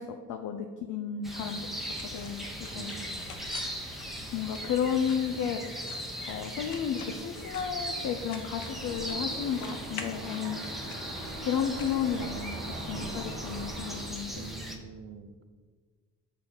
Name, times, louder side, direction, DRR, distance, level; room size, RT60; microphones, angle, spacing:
voice 1, 0.0-3.3 4.3-5.6 6.3-10.6 11.4-14.5, left 7 dB, 45° left, 5 dB, 0.6 m, -33 dB
sound 1, 1.2-14.8, equal, ahead, 1.0 m, -39 dB
sound 2, 1.5-12.8, left 5 dB, 75° left, 0.8 m, -49 dB
voice 2, 2.7-3.3 14.3-15.4, right 6 dB, 30° right, 9 dB, 0.6 m, -45 dB
sound 3, 8.6-14.1, right 2 dB, 80° right, 1.2 m, -42 dB
8.0 x 2.7 x 5.2 m, 1.5 s
hypercardioid pair, 45°, 46 cm